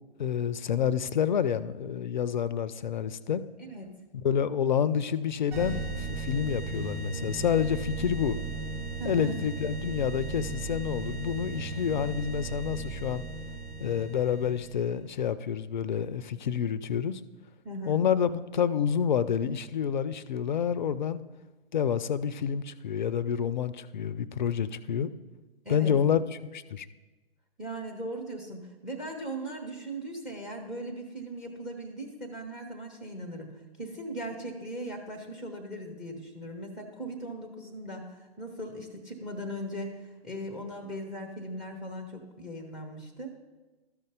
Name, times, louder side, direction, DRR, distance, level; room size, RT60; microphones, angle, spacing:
voice 1, 0.2-3.4 4.2-8.4 9.0-13.2 13.8-17.2 17.9-21.2 21.7-25.1 25.7-26.2 26.5-26.9, left 8 dB, 45° left, 16 dB, 0.4 m, -28 dB
voice 2, 3.6-4.0 9.0-9.3 17.6-18.0 25.6-26.0 27.6-33.5 33.8-43.4, right 1 dB, ahead, 6 dB, 0.6 m, -39 dB
sound 1, 5.5-14.9, right 3 dB, 45° right, 2.9 m, -36 dB
13.0 x 5.3 x 3.7 m, 1.2 s
figure-of-eight pair, 120°, 32 cm